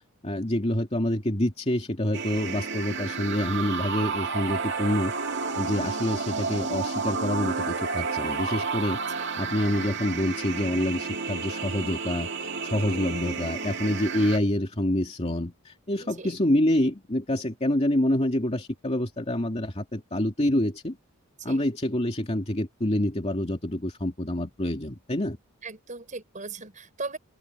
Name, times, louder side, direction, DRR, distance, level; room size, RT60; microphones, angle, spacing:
voice 1, 0.2-5.1 5.6-21.0 21.4-25.4, left 1 dB, 30° left, 2.6 m, -27 dB
sound 1, 2.1-14.4, right 5 dB, 55° right, 2.0 m, -31 dB
sound 2, 5.1-12.9, right 2 dB, 90° right, 7.1 m, -48 dB
voice 2, 16.0-16.3 21.4-21.6 25.6-27.2, right 3 dB, 35° right, 5.3 m, -39 dB
open air
head